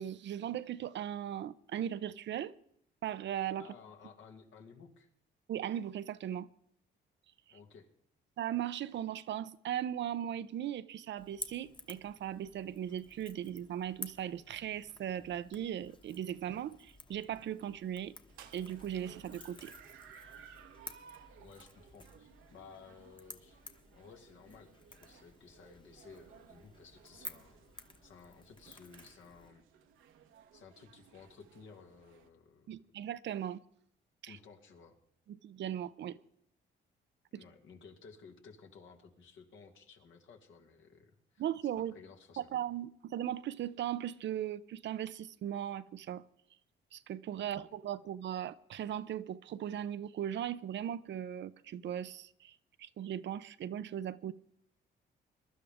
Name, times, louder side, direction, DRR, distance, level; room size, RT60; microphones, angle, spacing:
voice 1, 0.0-2.5 3.0-3.7 5.5-6.5 8.4-18.1 18.5-19.7 32.7-33.6 34.2-34.4 35.3-36.2 37.3-37.4 41.4-41.9 42.4-46.2 46.9-54.3, right 10 dB, 65° right, 0.7 m, -38 dB
voice 2, 3.6-5.1 7.5-7.9 21.4-23.6 23.9-27.6 28.0-29.6 30.5-32.8 34.3-35.0 37.3-42.5 47.4-47.5, left 5 dB, 75° left, 2.3 m, -56 dB
Crackle / Crack, 11.2-29.5, left 3 dB, 25° left, 1.3 m, -53 dB
sound 1, 18.3-32.3, right 8 dB, 85° right, 1.2 m, -59 dB
22.5 x 12.0 x 3.6 m
cardioid pair, 90°, 20 cm